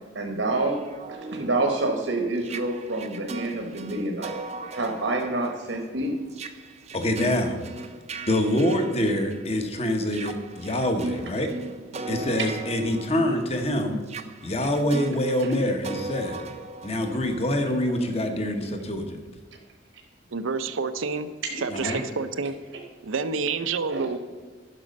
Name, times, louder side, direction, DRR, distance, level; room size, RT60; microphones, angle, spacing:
voice 1, 0.1-0.8 1.3-4.3 4.7-6.1 11.9-12.3 21.5-21.9 23.9-24.1, right 2 dB, 70° right, 2 dB, 1.1 m, -28 dB
sound 1, 0.7-9.6 10.0-17.8, right 2 dB, 35° right, 0.6 m, -39 dB
voice 2, 6.9-7.6 8.3-11.5 12.1-14.0 14.4-16.4 16.8-19.2 21.7-22.0, left 1 dB, 30° left, 6 dB, 1.0 m, -25 dB
voice 3, 20.3-21.3 21.6-22.5 23.0-24.2, right 4 dB, 85° right, 11 dB, 0.6 m, -28 dB
10.5 x 6.1 x 5.3 m, 1.5 s
head